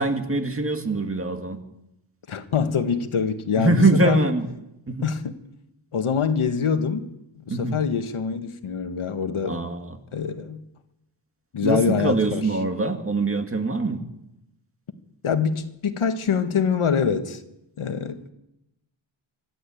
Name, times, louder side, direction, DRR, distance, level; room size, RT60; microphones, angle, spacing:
voice 1, 0.0-1.6 3.6-4.5 4.9-5.1 7.5-7.8 9.4-10.0 11.6-14.0, right 2 dB, 25° right, 2.0 m, -23 dB
voice 2, 2.3-4.2 5.0-5.4 5.9-7.1 7.5-9.6 10.1-10.6 11.5-12.4 15.2-17.4 17.8-18.2, left 6 dB, 80° left, 1.7 m, -24 dB
25.5 x 12.5 x 8.6 m
wide cardioid pair, 155°, 49 cm